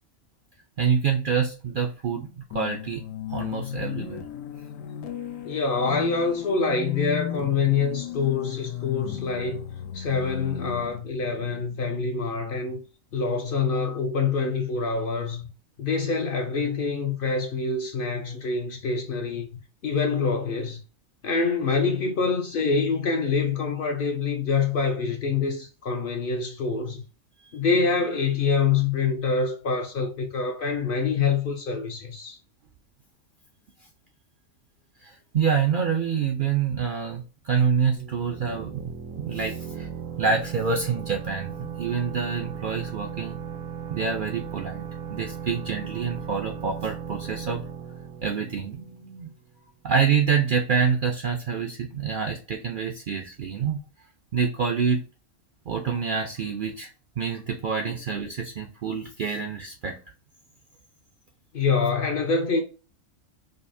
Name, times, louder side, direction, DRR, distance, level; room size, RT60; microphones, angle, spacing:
voice 1, 0.8-3.0 3.3-4.3 27.4-27.5 35.0-38.8 39.2-39.9 40.2-43.4 43.9-44.8 45.1-47.6 48.2-49.3 49.8-53.8 54.3-55.0 55.7-56.9 57.2-60.0, right 6 dB, 60° right, 0.5 m, -27 dB
sound 1, 2.5-12.4, left 10 dB, 90° left, 1.0 m, -35 dB
voice 2, 5.4-9.6 9.9-12.8 13.1-15.5 15.8-19.5 19.8-20.8 21.2-27.0 27.5-32.4 57.8-57.9 61.5-62.6, left 5 dB, 55° left, 0.7 m, -25 dB
sound 2, 38.0-49.5, right 8 dB, 90° right, 1.1 m, -37 dB
5.1 x 2.1 x 2.6 m
omnidirectional pair, 1.3 m